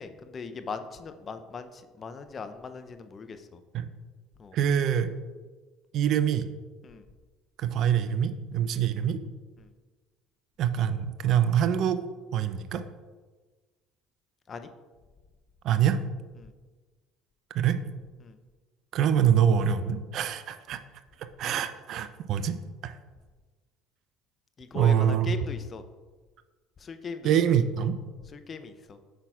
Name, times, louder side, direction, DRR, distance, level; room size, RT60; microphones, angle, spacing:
voice 1, 0.0-3.6 4.4-4.6 6.8-7.0 8.7-8.9 9.6-9.7 14.5-14.7 16.4-16.5 18.2-18.4 24.6-25.8 26.8-27.3 28.3-29.0, left 5 dB, 35° left, 9 dB, 0.5 m, -39 dB
voice 2, 4.5-5.1 5.9-6.5 7.6-9.2 10.6-12.0 12.3-12.8 15.6-16.0 17.5-17.8 18.9-20.8 21.4-22.5 22.8-22.9 24.7-25.3 27.2-28.0, right 9 dB, 55° right, 11 dB, 0.4 m, -25 dB
7.8 x 5.7 x 2.4 m, 1.3 s
hypercardioid pair, 65°, 0 cm